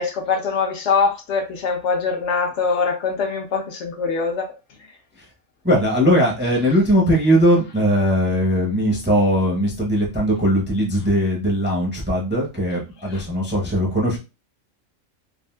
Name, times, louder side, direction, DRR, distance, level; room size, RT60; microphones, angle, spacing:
voice 1, 0.0-4.5 13.1-13.2, left 5 dB, 70° left, 1.0 m, -23 dB
voice 2, 5.6-14.2, equal, 10° right, 0.6 m, -19 dB
3.5 x 2.3 x 2.2 m
omnidirectional pair, 1.3 m